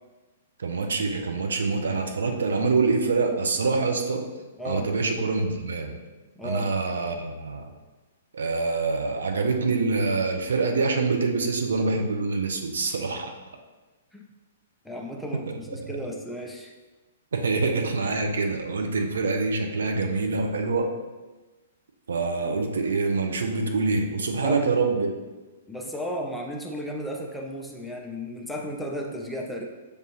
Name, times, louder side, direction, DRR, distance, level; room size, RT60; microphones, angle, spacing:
voice 1, 0.6-4.2 4.6-6.0 6.4-7.7 8.3-13.3 15.9-16.0 17.3-20.9 22.1-25.1, right 3 dB, 65° right, 3 dB, 0.5 m, -25 dB
voice 2, 4.6-4.9 6.4-6.7 14.1-14.2 14.8-16.7 24.4-24.7 25.7-29.6, equal, ahead, -2 dB, 0.5 m, -34 dB
6.5 x 2.6 x 3.0 m, 1.2 s
figure-of-eight pair, 110°, 0 cm